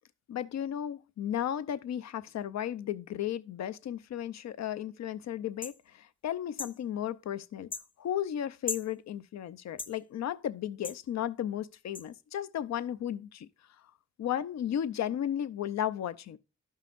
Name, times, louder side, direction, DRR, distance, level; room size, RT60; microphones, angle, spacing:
voice 1, 0.3-7.7 8.0-13.5 14.2-16.4, left 10 dB, 60° left, 0.6 m, -34 dB
sound 1, 5.6-5.8 6.6-6.8 7.7-7.9 8.7-8.9 9.8-10.0 10.8-11.0 11.9-12.1, left 4 dB, 15° left, 0.6 m, -37 dB
12.5 x 5.6 x 2.5 m
cardioid pair, 65°, 30 cm